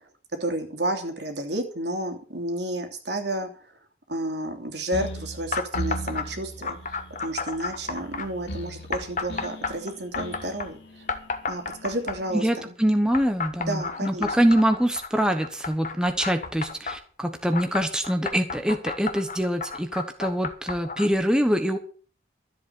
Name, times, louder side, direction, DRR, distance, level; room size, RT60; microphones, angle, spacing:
voice 1, 0.4-3.5 4.1-6.8 7.2-10.8 11.5-12.7 13.6-14.3, right 1 dB, 70° right, 5 dB, 2.8 m, -31 dB
sound 1, 4.9-12.4, right 1 dB, 75° left, 3.0 m, -38 dB
sound 2, 5.5-6.3 6.6-8.3 8.9-10.7 11.1-12.4 13.1-17.0 17.5-21.1, left 4 dB, 45° left, 1.4 m, -32 dB
voice 2, 12.3-21.8, equal, 5° right, 6 dB, 1.0 m, -24 dB
13.0 x 8.1 x 7.0 m, 0.42 s
head